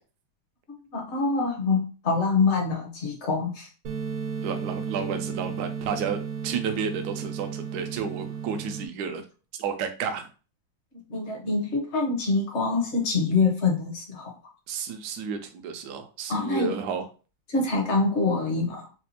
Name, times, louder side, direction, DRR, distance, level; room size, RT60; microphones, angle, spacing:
voice 1, 0.7-3.7 11.1-14.3 16.3-16.7 17.5-18.9, left 4 dB, 45° left, 1 dB, 0.9 m, -25 dB
sound 1, 3.9-8.9, right 6 dB, 90° right, 1.5 m, -34 dB
voice 2, 4.4-6.2 6.4-9.2 9.6-10.3 14.7-17.1, right 6 dB, 70° right, 7 dB, 1.0 m, -31 dB
4.2 x 2.3 x 2.8 m, 0.35 s
omnidirectional pair, 2.2 m